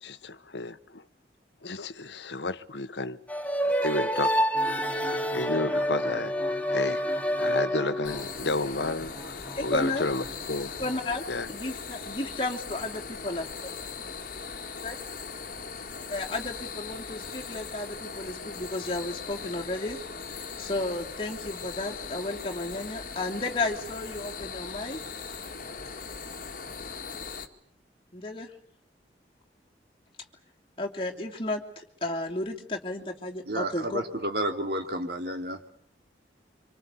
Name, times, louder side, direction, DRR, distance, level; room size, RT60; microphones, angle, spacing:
voice 1, 0.0-1.0 1.6-3.2 3.6-7.0 7.4-9.3 9.6-10.7 11.3-11.5, left 2 dB, 85° left, 1.1 m, -32 dB
sound 1, 3.3-8.3, equal, 10° left, 1.3 m, -27 dB
sound 2, 4.5-11.0, right 1 dB, 10° right, 6.8 m, -43 dB
sound 3, 8.0-27.5, left 5 dB, 50° left, 2.2 m, -39 dB
voice 2, 9.5-10.1 10.8-13.7 14.8-15.0 16.1-20.0 20.6-25.0 28.1-28.5 30.8-34.0, left 2 dB, 30° left, 3.1 m, -33 dB
voice 3, 33.4-35.7, right 1 dB, 60° right, 2.8 m, -31 dB
26.5 x 25.5 x 8.4 m
head